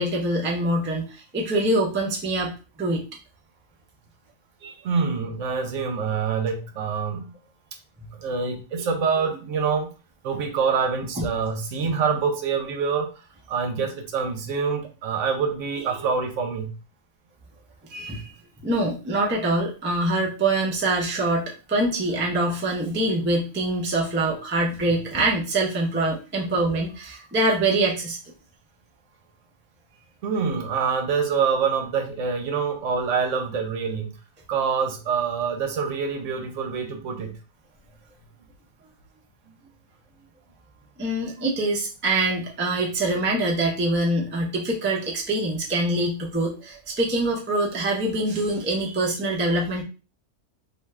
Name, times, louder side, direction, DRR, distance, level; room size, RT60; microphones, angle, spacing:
voice 1, 0.0-3.0 4.6-5.0 8.8-8.9 11.2-11.3 15.8-15.9 17.9-18.4 18.6-28.2 41.0-49.8, right 2 dB, 15° right, -3 dB, 0.3 m, -24 dB
voice 2, 4.8-7.3 8.2-9.9 10.2-16.7 26.3-26.4 30.2-34.1 34.5-37.3, right 5 dB, 70° right, 5 dB, 0.9 m, -26 dB
2.6 x 2.3 x 3.2 m, 0.33 s
omnidirectional pair, 1.4 m